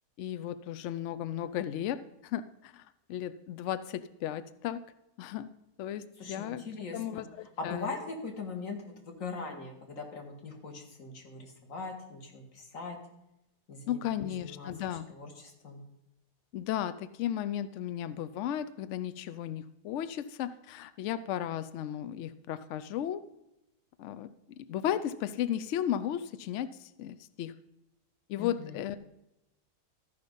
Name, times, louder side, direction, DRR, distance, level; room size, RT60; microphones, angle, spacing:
voice 1, 0.2-2.8 3.1-4.8 5.2-5.5 5.8-6.6 6.9-7.9 13.9-15.1 16.5-23.2 24.0-24.3 24.6-27.5 28.3-29.0, left 10 dB, 75° left, 13 dB, 0.6 m, -35 dB
voice 2, 6.2-7.2 7.6-13.0 13.7-15.8 28.4-29.0, left 4 dB, 55° left, 3 dB, 1.9 m, -41 dB
13.5 x 5.1 x 5.3 m, 0.88 s
omnidirectional pair, 1.7 m